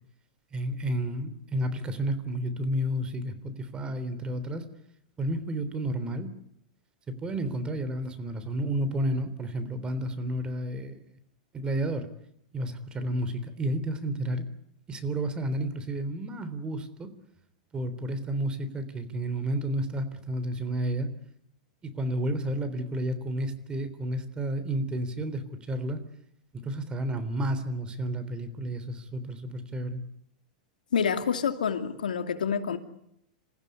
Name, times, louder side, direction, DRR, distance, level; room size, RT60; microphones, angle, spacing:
voice 1, 0.5-4.6 5.2-6.3 7.1-11.0 11.5-12.1 12.5-14.4 14.9-17.1 17.7-21.1 21.8-26.0 26.5-30.0, right 1 dB, 20° right, 3.5 m, -31 dB
voice 2, 30.9-32.8, left 7 dB, 85° left, 2.6 m, -27 dB
28.0 x 15.5 x 9.8 m
hypercardioid pair, 115°, 4 cm